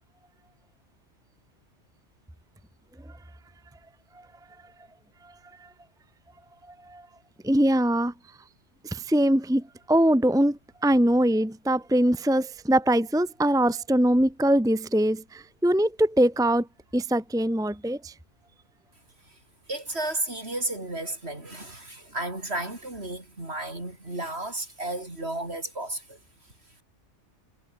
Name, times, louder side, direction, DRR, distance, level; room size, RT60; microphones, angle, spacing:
voice 1, 7.4-8.1 8.8-16.7 16.9-18.1, right 1 dB, 5° right, 1.2 m, -22 dB
voice 2, 19.7-26.2, right 2 dB, 60° right, 5.9 m, -33 dB
omnidirectional pair, 1.3 m